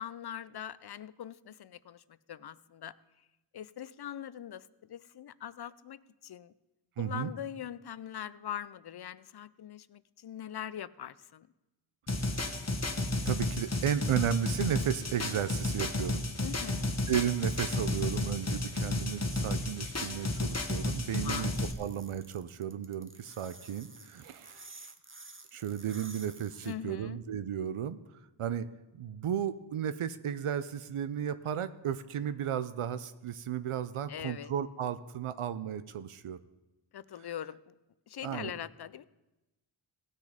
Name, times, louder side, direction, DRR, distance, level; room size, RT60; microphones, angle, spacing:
voice 1, 0.0-2.0 2.3-3.0 3.5-6.5 7.0-11.5 16.4-17.0 21.1-21.6 26.6-27.2 34.1-34.5 36.9-37.6 38.1-39.1, left 10 dB, 55° left, 18 dB, 0.5 m, -42 dB
voice 2, 7.0-7.3 12.2-12.3 13.2-16.2 17.1-21.5 21.8-24.9 25.5-28.0 28.4-28.7 29.0-36.4 38.2-38.5, right 9 dB, 80° right, 13 dB, 0.6 m, -34 dB
sound 1, 12.1-21.7, left 2 dB, 30° left, 1.2 m, -32 dB
sound 2, 21.6-26.7, right 3 dB, 25° right, 1.0 m, -51 dB
17.0 x 6.4 x 5.0 m, 1.0 s
wide cardioid pair, 60°, 50 cm